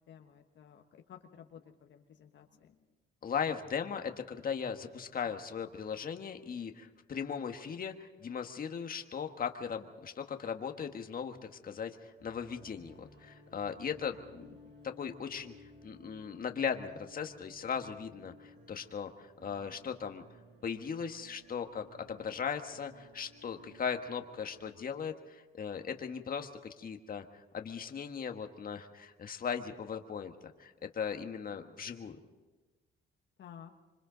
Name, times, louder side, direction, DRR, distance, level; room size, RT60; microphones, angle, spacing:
voice 1, 0.1-2.8 33.4-33.7, left 8 dB, 65° left, 3 dB, 1.4 m, -54 dB
voice 2, 3.2-14.5 14.8-15.5 15.8-20.2 20.6-26.5 26.8-32.2, left 7 dB, 45° left, 5 dB, 1.6 m, -38 dB
sound 1, 12.2-24.7, left 1 dB, 65° right, 5.3 m, -58 dB
26.5 x 24.5 x 4.0 m, 1.2 s
cardioid pair, 90°, 20 cm